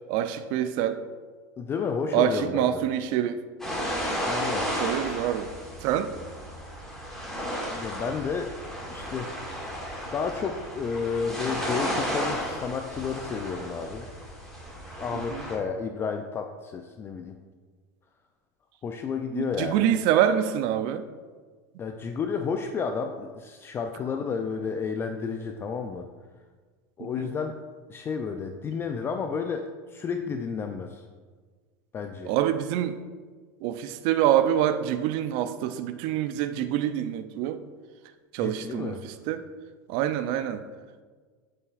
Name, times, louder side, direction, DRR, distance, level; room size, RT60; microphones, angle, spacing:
voice 1, 0.1-1.0 2.1-3.4 4.8-5.5 5.8-6.1 15.3-15.4 19.3-21.0 27.0-27.3 32.2-33.0 33.6-37.6 38.3-39.4 39.9-40.6, right 10 dB, 60° right, 10 dB, 0.4 m, -26 dB
voice 2, 1.6-2.7 4.2-4.7 7.7-8.5 8.9-9.3 10.1-14.1 15.0-17.4 18.8-19.8 21.8-26.1 27.0-27.6 27.9-31.1 31.9-32.3 38.4-39.0, left 5 dB, 25° left, 5 dB, 0.3 m, -31 dB
sound 1, 3.6-15.5, equal, 5° left, 1.9 m, -33 dB
7.9 x 5.5 x 2.4 m, 1.5 s
supercardioid pair, 125°, 9 cm